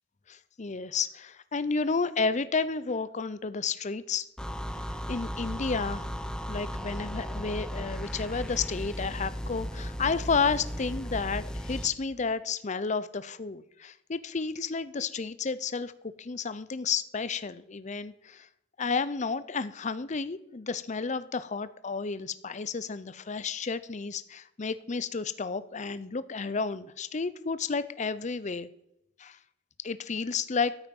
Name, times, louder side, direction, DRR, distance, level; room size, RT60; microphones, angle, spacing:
voice 1, 0.3-4.3 5.1-6.1 6.5-15.9 16.2-18.5 18.8-28.7 29.2-29.4 29.8-30.8, left 5 dB, 40° left, 15 dB, 0.6 m, -31 dB
sound 1, 4.4-11.9, equal, 5° left, 0.9 m, -36 dB
sound 2, 5.3-11.7, equal, 65° left, 4.4 m, -52 dB
13.0 x 9.0 x 5.4 m, 0.83 s
head